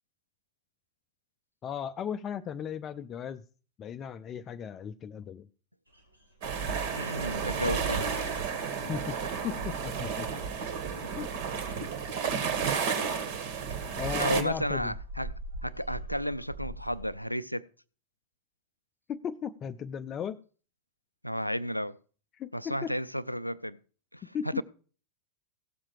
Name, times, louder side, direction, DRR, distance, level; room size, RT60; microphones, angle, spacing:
voice 1, 1.6-3.4 3.8-5.5 8.9-9.2 9.4-10.3 11.2-11.3 14.0-14.8 19.1-20.4 22.4-22.9 24.2-24.6, left 8 dB, 30° left, 0.5 m, -36 dB
sound 1, 5.9-7.0 7.3-17.3, right 1 dB, 85° right, 3.0 m, -45 dB
sound 2, 6.4-14.4, right 6 dB, 50° right, 2.0 m, -32 dB
voice 2, 7.0-8.4 14.2-15.3 15.6-17.6 21.2-22.0 22.5-23.8 24.1-24.6, equal, 90° left, 0.5 m, -33 dB
17.0 x 7.4 x 4.7 m
figure-of-eight pair, 90°, 0 cm